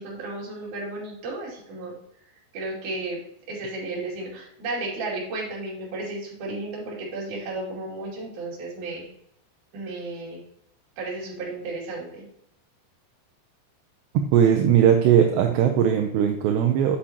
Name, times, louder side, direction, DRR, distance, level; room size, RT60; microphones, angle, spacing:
voice 1, 0.0-2.0 2.5-3.2 3.5-9.1 9.7-10.4 11.0-12.3, right 2 dB, 50° right, -4 dB, 3.5 m, -33 dB
voice 2, 14.1-17.0, right 9 dB, 80° right, 3 dB, 2.8 m, -19 dB
8.3 x 7.6 x 2.9 m, 0.73 s
omnidirectional pair, 5.2 m